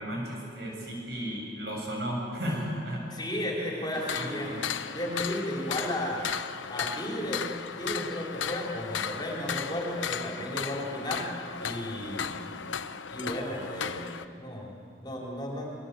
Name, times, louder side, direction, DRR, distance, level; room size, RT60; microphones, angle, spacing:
voice 1, 0.0-3.0 3.6-4.6, equal, 60° right, -1 dB, 7.3 m, -35 dB
voice 2, 3.1-6.3 6.7-7.5 7.8-11.2 11.6-12.4 13.1-14.1 14.4-15.7, left 1 dB, 20° left, -1 dB, 4.0 m, -34 dB
sound 1, 3.9-14.3, left 7 dB, 85° left, 0.9 m, -35 dB
27.0 x 21.5 x 8.4 m, 2.5 s
head